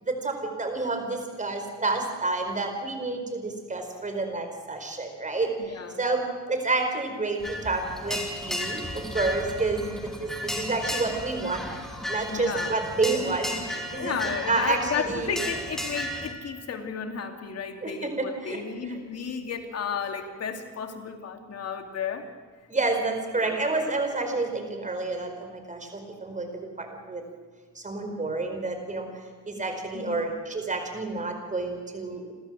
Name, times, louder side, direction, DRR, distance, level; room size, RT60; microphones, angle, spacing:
voice 1, 0.0-5.5 6.0-6.2 6.5-9.8 10.2-11.7 12.1-15.4 17.8-18.6 18.9-19.0 22.7-26.5 26.8-27.2 27.8-29.0 29.5-32.3, right 3 dB, 25° right, 5 dB, 4.8 m, -29 dB
voice 2, 5.6-6.0 9.8-10.1 12.3-12.9 13.9-22.3 23.3-23.6 29.9-30.3, left 6 dB, 55° left, 4 dB, 2.8 m, -33 dB
sound 1, 7.4-16.3, left 1 dB, ahead, 3.4 m, -34 dB
29.0 x 13.5 x 7.6 m, 1.5 s
cardioid pair, 90°, 30 cm